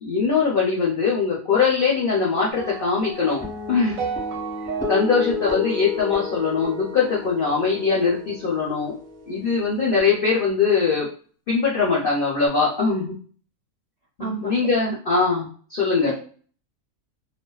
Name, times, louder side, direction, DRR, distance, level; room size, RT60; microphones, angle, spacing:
voice 1, 0.0-3.4 3.7-4.0 4.9-8.9 9.3-11.1 11.5-13.1 14.2-16.1, left 5 dB, 65° left, -4 dB, 0.5 m, -21 dB
sound 1, 2.6-6.9, right 6 dB, 75° right, 0.9 m, -34 dB
sound 2, 3.4-10.0, left 4 dB, 10° left, 0.4 m, -32 dB
voice 2, 14.2-14.7 16.0-16.1, right 3 dB, 50° right, -4 dB, 0.4 m, -30 dB
2.4 x 2.2 x 2.3 m, 0.43 s
omnidirectional pair, 1.5 m